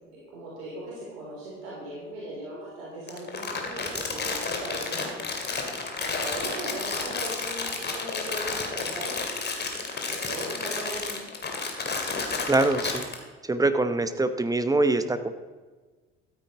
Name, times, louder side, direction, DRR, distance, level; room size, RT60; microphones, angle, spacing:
voice 1, 0.1-5.3 6.0-9.2 10.1-11.2, right 1 dB, 70° right, -6 dB, 3.6 m, -38 dB
Crumpling crinkling, 3.1-13.2, left 4 dB, 30° left, 2.4 m, -31 dB
voice 2, 12.5-13.1 13.4-15.3, right 2 dB, 10° right, 11 dB, 0.9 m, -24 dB
13.0 x 9.3 x 4.8 m, 1.3 s
figure-of-eight pair, 55°, 32 cm